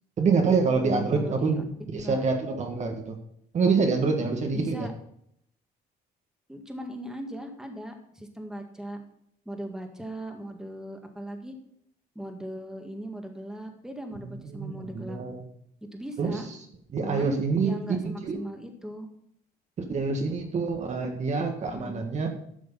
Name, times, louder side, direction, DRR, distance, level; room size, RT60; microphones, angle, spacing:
voice 1, 0.2-1.6 1.9-3.2 3.5-4.9 14.2-15.4 16.2-16.4 16.9-18.4 19.8-22.3, right 4 dB, 45° right, 4 dB, 1.6 m, -26 dB
voice 2, 0.7-1.6 1.9-2.2 4.5-4.9 6.5-9.0 9.5-11.5 12.2-15.2 15.9-16.5 17.0-19.1 21.7-22.0, equal, 5° right, 3 dB, 1.9 m, -38 dB
12.0 x 6.4 x 5.5 m, 0.72 s
cardioid pair, 110°, 17 cm